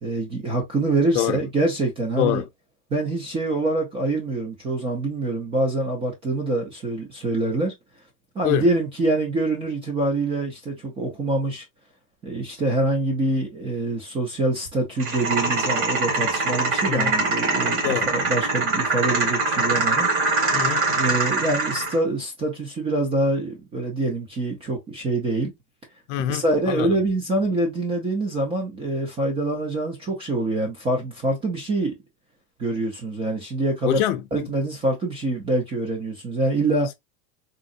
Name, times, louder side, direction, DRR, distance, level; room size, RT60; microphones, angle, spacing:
voice 1, 0.0-2.4 2.9-7.7 8.4-11.6 12.2-20.1 21.0-25.5 26.3-31.9 32.6-34.0 34.3-36.9, right 2 dB, 15° right, 0.4 m, -25 dB
sound 1, 15.0-22.0, right 3 dB, 45° right, 1.5 m, -23 dB
voice 2, 20.5-20.8 26.1-27.0 33.8-34.5, left 12 dB, 55° left, 0.6 m, -25 dB
3.7 x 2.0 x 2.5 m
supercardioid pair, 155°, 42 cm